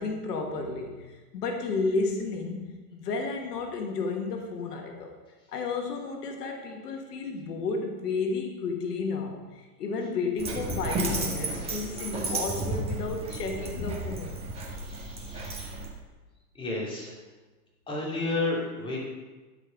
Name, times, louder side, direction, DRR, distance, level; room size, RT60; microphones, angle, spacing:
voice 1, 0.0-2.7 2.9-5.2 5.5-14.4, left 4 dB, 85° left, 3 dB, 1.5 m, -32 dB
Dog, 10.4-15.9, right 2 dB, 10° right, 1.5 m, -33 dB
voice 2, 14.6-15.9 16.5-17.1 17.9-19.0, left 2 dB, 10° left, -5 dB, 2.4 m, -32 dB
12.0 x 5.0 x 5.0 m, 1.3 s
hypercardioid pair, 135°, 46 cm